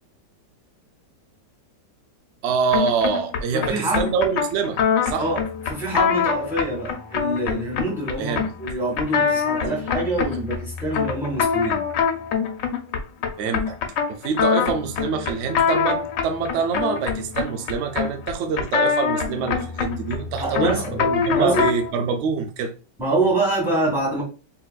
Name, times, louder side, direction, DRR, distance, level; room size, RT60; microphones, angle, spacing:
voice 1, 2.4-5.3 8.2-8.5 9.2-9.4 13.4-13.8 14.1-22.7, right 5 dB, 80° right, 0.6 m, -25 dB
sound 1, 2.7-21.9, left 6 dB, 80° left, 1.3 m, -24 dB
voice 2, 3.5-4.1 5.2-11.8 20.4-21.7 23.0-24.2, right 2 dB, ahead, 1.6 m, -25 dB
3.8 x 2.7 x 2.3 m
omnidirectional pair, 1.9 m